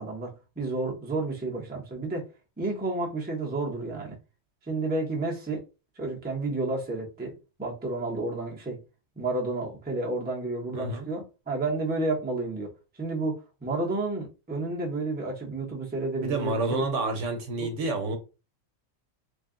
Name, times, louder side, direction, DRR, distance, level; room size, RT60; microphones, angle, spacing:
voice 1, 0.0-2.3 2.6-4.2 4.7-5.6 6.0-7.3 7.6-8.8 9.2-16.8 17.6-17.7, right 2 dB, 10° right, 0.6 m, -31 dB
voice 2, 10.7-11.1 16.2-18.2, right 2 dB, 65° right, 1.1 m, -29 dB
3.4 x 2.2 x 3.7 m
omnidirectional pair, 1.4 m